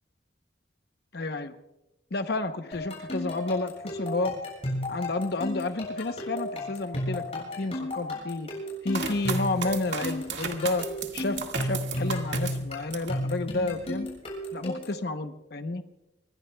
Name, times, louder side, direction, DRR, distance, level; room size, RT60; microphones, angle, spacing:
voice 1, 1.1-1.6 2.1-4.4 4.9-8.5 8.8-10.9 11.1-14.1 14.5-15.8, left 2 dB, 60° left, 8 dB, 0.8 m, -31 dB
sound 1, 2.7-15.0, left 1 dB, 35° left, 7.4 m, -34 dB
sound 2, 8.9-13.2 13.7-14.3, right 6 dB, 70° right, 1.8 m, -35 dB
25.5 x 20.5 x 2.3 m, 0.97 s
head